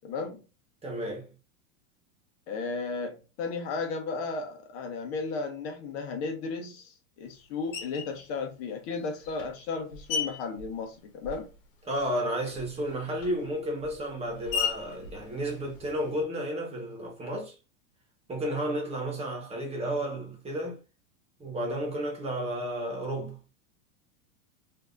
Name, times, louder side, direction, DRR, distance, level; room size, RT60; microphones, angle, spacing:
voice 1, 0.0-0.4 2.5-11.5, left 4 dB, 55° left, 1.0 m, -34 dB
voice 2, 0.8-1.2 11.9-17.5 18.3-20.8 21.4-23.4, right 1 dB, 15° right, 1.2 m, -32 dB
Screech, 7.7-8.2 8.9-11.7 11.9-16.2, left 6 dB, 70° left, 1.2 m, -37 dB
3.3 x 2.7 x 2.6 m
supercardioid pair, 130°, 40 cm